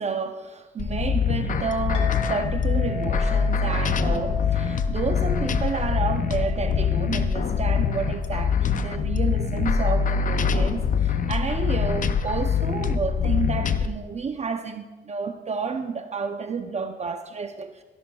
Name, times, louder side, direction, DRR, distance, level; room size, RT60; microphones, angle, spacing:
voice 1, 0.0-17.8, right 5 dB, 35° right, 0.6 m, -30 dB
sound 1, 0.8-13.9, left 6 dB, 40° left, 0.6 m, -24 dB
Chink clink, 1.9-10.6, left 2 dB, 25° left, 2.0 m, -40 dB
16.0 x 10.5 x 2.3 m
cardioid pair, 90°, 20 cm